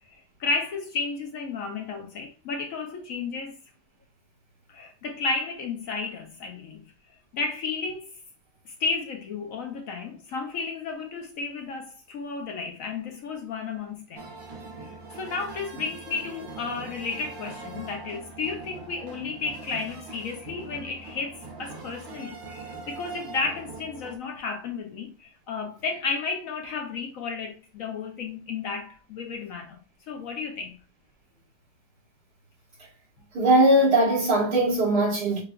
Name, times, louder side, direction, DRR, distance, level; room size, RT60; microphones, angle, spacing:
voice 1, 0.1-3.6 4.7-6.8 7.3-8.1 8.7-14.2 14.8-29.8 30.1-30.8, left 4 dB, 65° left, 1.0 m, -33 dB
sound 1, 14.2-24.2, right 3 dB, 35° right, 1.0 m, -42 dB
voice 2, 33.3-35.4, right 1 dB, 70° right, 2.5 m, -20 dB
6.7 x 2.3 x 2.3 m
omnidirectional pair, 1.8 m